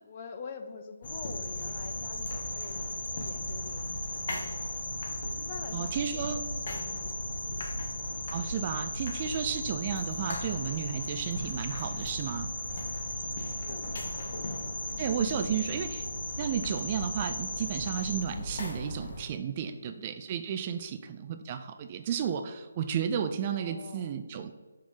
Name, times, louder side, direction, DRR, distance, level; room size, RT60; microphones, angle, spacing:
voice 1, 0.0-2.8 3.1-4.8 5.4-7.2 7.6-7.7 13.3-15.2 19.7-20.1 20.5-21.0 23.4-24.2, left 5 dB, 35° left, 6 dB, 0.6 m, -47 dB
sound 1, 1.0-18.2, left 2 dB, 70° left, 1.5 m, -39 dB
sound 2, 1.0-19.2, left 1 dB, 50° left, 1.1 m, -38 dB
voice 2, 5.7-6.4 8.3-12.5 15.0-16.1 16.4-24.5, right 8 dB, 30° right, 8 dB, 0.3 m, -33 dB
5.7 x 4.8 x 3.6 m, 1.3 s
figure-of-eight pair, 160°, 0 cm